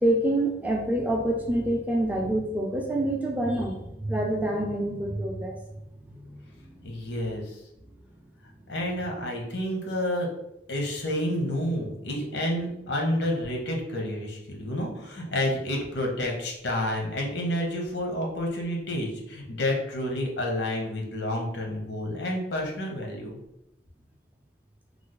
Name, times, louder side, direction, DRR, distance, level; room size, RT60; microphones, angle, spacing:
voice 1, 0.0-5.6 6.0-6.8 14.7-14.9, right 1 dB, 10° right, 0 dB, 0.4 m, -27 dB
voice 2, 6.8-7.6 8.7-10.3 10.7-23.4, left 1 dB, 80° left, 0 dB, 0.8 m, -29 dB
3.2 x 2.0 x 3.9 m, 0.83 s
head